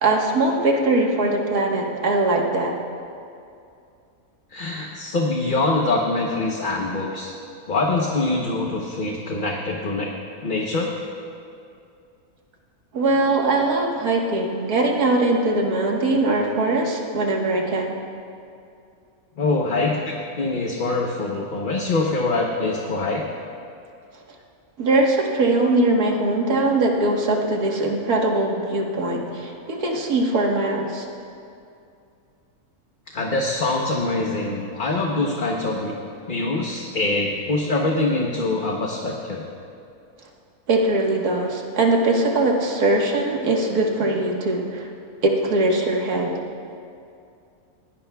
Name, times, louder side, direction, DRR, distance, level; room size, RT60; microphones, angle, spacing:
voice 1, 0.0-2.7 12.9-18.0 24.8-31.1 40.7-44.9 45.2-46.3, right 2 dB, 85° right, 0 dB, 1.9 m, -21 dB
voice 2, 4.5-7.3 7.7-10.1 10.4-10.9 19.4-23.3 33.1-35.9 36.3-39.5, left 2 dB, 40° left, -1 dB, 1.0 m, -24 dB
20.5 x 17.0 x 2.3 m, 2.5 s
omnidirectional pair, 1.6 m